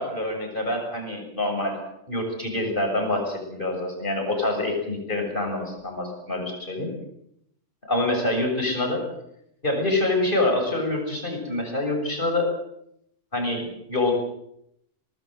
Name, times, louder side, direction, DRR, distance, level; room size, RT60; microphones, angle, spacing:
voice 1, 0.0-1.8 2.1-6.9 7.9-9.0 9.6-12.5 13.3-14.1, left 2 dB, 40° left, 3 dB, 7.2 m, -26 dB
24.0 x 20.0 x 8.0 m, 0.77 s
omnidirectional pair, 1.3 m